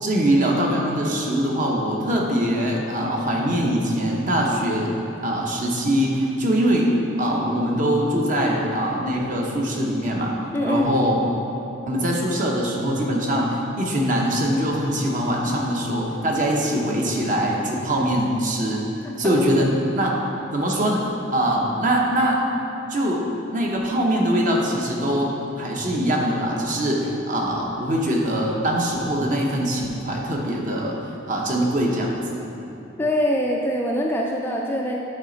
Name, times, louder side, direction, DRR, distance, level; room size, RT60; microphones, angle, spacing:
voice 1, 0.0-4.9 5.2-10.3 10.6-11.3 11.9-18.8 19.2-20.1 20.5-21.0 21.3-22.4 22.9-25.3 25.6-31.0 31.3-32.4, equal, 40° right, -1 dB, 0.9 m, -22 dB
voice 2, 10.5-11.0 19.0-19.5 33.0-35.0, equal, 10° left, -1 dB, 0.3 m, -24 dB
8.9 x 4.2 x 3.9 m, 2.9 s
head